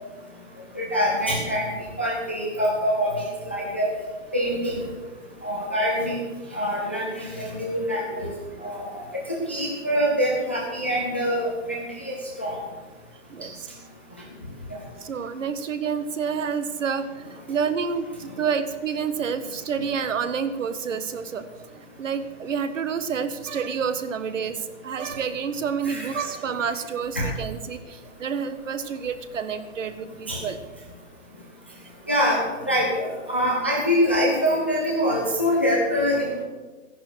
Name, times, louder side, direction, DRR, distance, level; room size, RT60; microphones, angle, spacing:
voice 1, 0.8-1.6 2.0-3.9 4.3-4.8 5.4-6.2 6.5-8.3 8.6-9.2 9.5-12.6 25.8-26.1 27.2-27.3 30.3-30.4 32.1-32.4 32.7-36.4, equal, 10° left, -3 dB, 0.5 m, -24 dB
voice 2, 13.3-13.7 15.0-30.6, right 6 dB, 65° right, 11 dB, 1.6 m, -29 dB
14.0 x 11.0 x 6.3 m, 1.3 s
hypercardioid pair, 170°, 40 cm